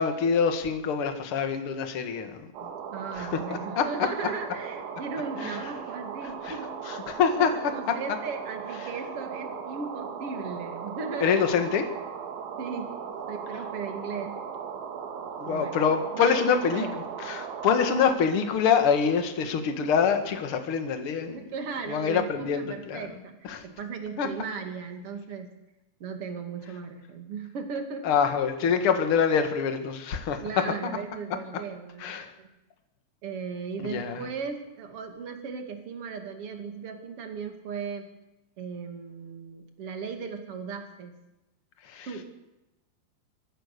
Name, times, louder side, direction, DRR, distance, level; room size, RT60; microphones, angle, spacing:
voice 1, 0.0-2.4 3.2-3.3 3.8-3.9 5.4-5.5 6.4-6.5 6.9-7.5 11.2-11.8 15.4-16.9 17.2-21.4 21.9-23.1 23.5-23.6 24.2-24.3 28.0-30.4 32.0-32.3 33.8-34.2 41.9-42.1, left 6 dB, 45° left, 6 dB, 1.8 m, -25 dB
sound 1, 2.5-18.2, right 7 dB, 90° right, 4.3 m, -37 dB
voice 2, 2.9-6.8 7.4-11.4 12.6-12.9 13.3-14.4 15.4-15.8 16.1-17.1 21.3-23.4 23.6-25.5 26.0-28.1 30.4-32.5 33.2-38.1 38.6-41.1 42.1-42.3, right 5 dB, 40° right, 5 dB, 2.6 m, -37 dB
26.0 x 14.5 x 6.9 m, 0.96 s
omnidirectional pair, 5.1 m